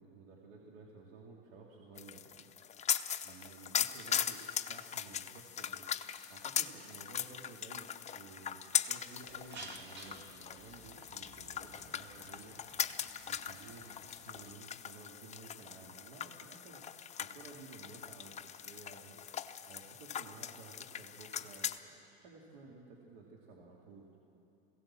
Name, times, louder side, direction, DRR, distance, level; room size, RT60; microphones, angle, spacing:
voice 1, 0.0-2.5 2.8-2.9 3.2-5.9 6.3-13.0 13.3-16.9 17.2-19.2 19.7-24.1, right 3 dB, 65° right, -2 dB, 2.7 m, -54 dB
sound 1, 2.0-21.8, left 9 dB, 20° left, 0.7 m, -40 dB
sound 2, 9.3-14.6, right 3 dB, 35° right, 2.0 m, -54 dB
21.0 x 16.5 x 7.5 m, 2.7 s
hypercardioid pair, 100°, 31 cm